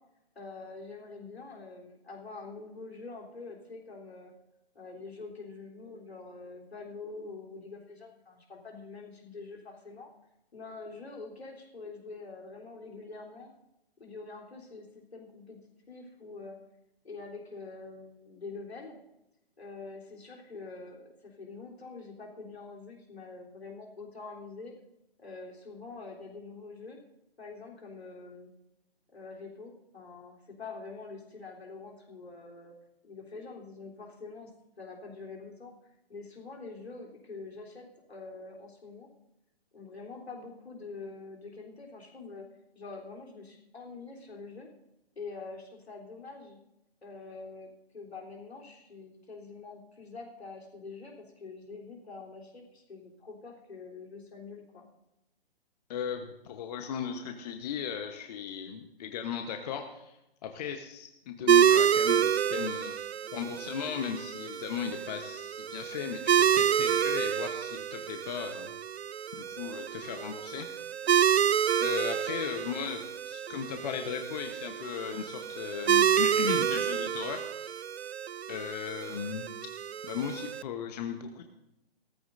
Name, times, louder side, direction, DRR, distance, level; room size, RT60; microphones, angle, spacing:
voice 1, 0.4-4.3 4.7-10.1 10.5-13.5 14.0-15.6 15.9-16.6 17.0-19.0 19.6-24.7 25.2-27.0 27.4-28.5 29.1-32.7 33.0-34.5 34.8-35.7 36.1-39.1 39.7-42.5 42.8-44.7 45.2-46.6 47.0-54.9, left 3 dB, 80° left, -1 dB, 3.7 m, -45 dB
voice 2, 55.9-60.2 60.4-62.9 63.3-68.7 69.4-70.7 70.9-71.0 71.8-77.8 78.5-79.5 80.0-81.4, left 8 dB, 40° left, 5 dB, 1.1 m, -37 dB
sound 1, 61.5-80.6, right 9 dB, 85° right, 0.5 m, -28 dB
18.0 x 14.0 x 2.6 m, 0.88 s
figure-of-eight pair, 135°, 31 cm